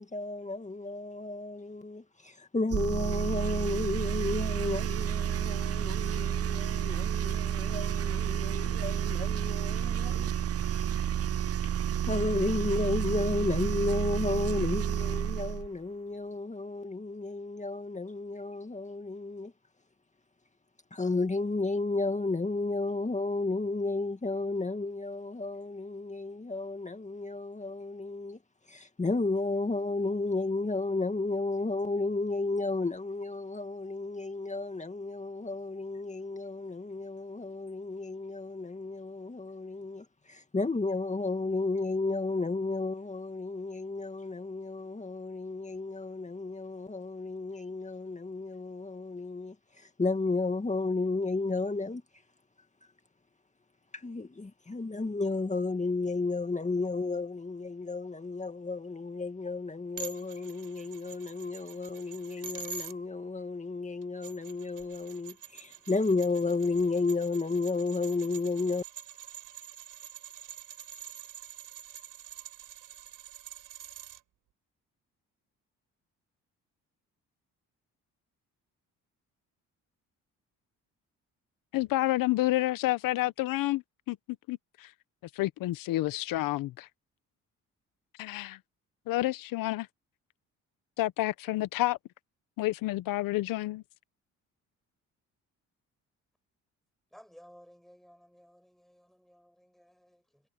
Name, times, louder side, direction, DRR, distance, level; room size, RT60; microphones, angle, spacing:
voice 1, 0.0-10.3 10.7-11.1 12.1-19.5 20.9-28.4 28.7-52.0 53.9-68.8, left 3 dB, 20° left, 2.1 m, -32 dB
sound 1, 2.7-15.7, right 10 dB, 45° right, 0.7 m, -30 dB
sound 2, 60.0-62.9 64.0-74.2, right 7 dB, 75° right, 7.1 m, -46 dB
voice 2, 81.7-84.2 84.5-84.9 85.3-86.9 88.2-88.6 89.1-89.9 91.0-92.0 92.6-93.8, left 17 dB, 80° left, 1.0 m, -29 dB
voice 3, 97.1-100.4, equal, ahead, 6.5 m, -57 dB
supercardioid pair, 65°, 33 cm